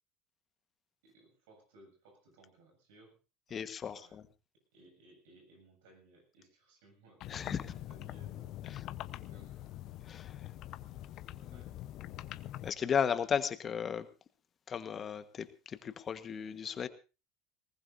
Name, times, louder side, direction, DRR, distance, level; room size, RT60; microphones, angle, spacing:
voice 1, 1.0-3.2 3.5-4.2 4.7-8.8 9.3-9.8 11.5-11.7, right 2 dB, 80° right, 2 dB, 7.8 m, -62 dB
voice 2, 3.5-4.2 7.3-7.7 8.7-8.8 10.0-10.5 11.4-11.6 12.6-14.1 14.7-16.9, left 7 dB, 40° left, 11 dB, 1.4 m, -35 dB
sound 1, 7.2-12.7, left 14 dB, 60° left, 0.9 m, -44 dB
20.0 x 19.0 x 2.7 m, 0.32 s
hypercardioid pair, 80°, 0 cm